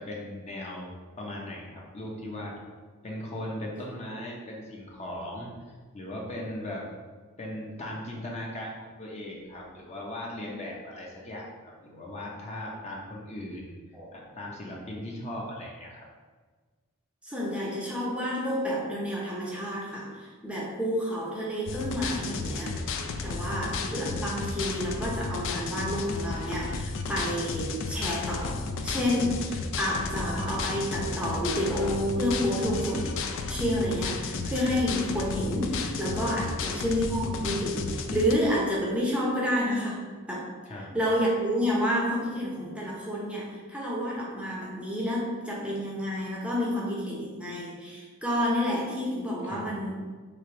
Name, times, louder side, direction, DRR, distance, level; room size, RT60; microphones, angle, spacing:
voice 1, 0.0-2.6 3.0-5.5 5.9-6.9 7.4-13.8 14.1-16.1 36.3-36.4 40.7-40.9 49.4-49.7, left 1 dB, 30° left, -2 dB, 0.7 m, -38 dB
voice 2, 17.2-22.9 23.2-33.0 33.5-40.0 40.3-40.5 40.7-50.0, equal, 5° right, -5 dB, 0.7 m, -29 dB
Dance Loop, 21.7-38.3, left 4 dB, 60° left, 0.3 m, -33 dB
3.3 x 2.9 x 4.4 m, 1.4 s
head